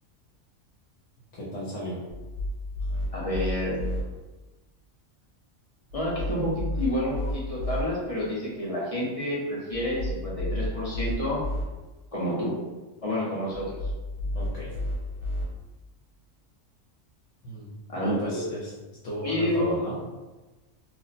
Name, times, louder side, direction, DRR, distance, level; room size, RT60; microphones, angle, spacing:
voice 1, 1.3-2.0 14.3-14.8 17.4-18.7 19.0-19.9, equal, 80° left, -6 dB, 1.0 m, -35 dB
sound 1, 2.1-4.0 5.9-7.8 9.7-11.6 13.5-15.4, left 1 dB, 55° right, 1.0 m, -32 dB
voice 2, 3.1-3.8 5.9-11.4 12.1-12.5 13.0-13.8 17.9-18.4 19.2-19.8, left 1 dB, 35° left, -6 dB, 0.6 m, -29 dB
2.5 x 2.1 x 3.8 m, 1.2 s
omnidirectional pair, 1.3 m